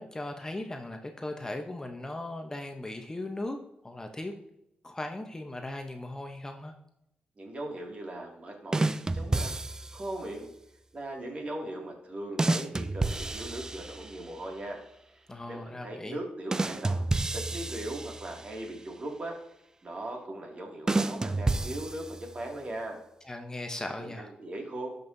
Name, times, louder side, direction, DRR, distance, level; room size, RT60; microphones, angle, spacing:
voice 1, 0.0-3.6 3.8-4.3 4.8-6.7 15.3-16.2 23.2-24.3, left 1 dB, 20° left, 4 dB, 0.8 m, -38 dB
voice 2, 7.4-9.5 9.9-10.5 10.9-14.8 15.5-17.0 17.3-19.4 19.8-23.0 24.0-24.9, right 1 dB, 40° right, 0 dB, 2.2 m, -39 dB
sound 1, 8.7-10.1 12.4-14.4 16.5-18.7 20.9-22.5, right 2 dB, 20° right, 0.3 m, -30 dB
12.0 x 5.4 x 2.7 m, 0.81 s
cardioid pair, 95°, 3 cm